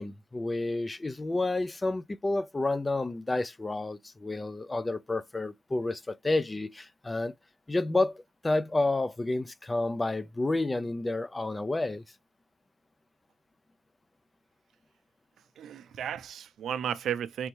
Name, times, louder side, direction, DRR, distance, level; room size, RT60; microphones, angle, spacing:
voice 1, 0.0-7.3 7.7-12.0, left 2 dB, 15° left, 0.3 m, -30 dB
voice 2, 15.6-17.5, right 9 dB, 75° right, 0.5 m, -34 dB
4.1 x 3.4 x 3.0 m
wide cardioid pair, 140°, 0 cm